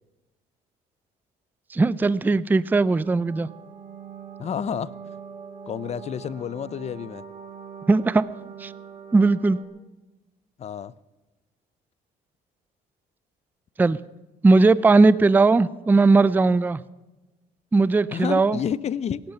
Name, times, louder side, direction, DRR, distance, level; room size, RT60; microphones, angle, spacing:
voice 1, 1.7-3.5 7.9-8.3 8.6-8.7 9.1-9.6 13.8-14.0 14.4-16.8 17.7-18.6, right 3 dB, 10° right, 18 dB, 0.4 m, -18 dB
sound 1, 2.5-9.6, right 7 dB, 45° right, 2.3 m, -42 dB
voice 2, 4.4-4.9 5.7-7.2 10.6-10.9 18.1-19.3, left 8 dB, 40° left, 19 dB, 0.6 m, -30 dB
17.5 x 12.0 x 5.8 m, 1.1 s
cardioid pair, 110°, 17 cm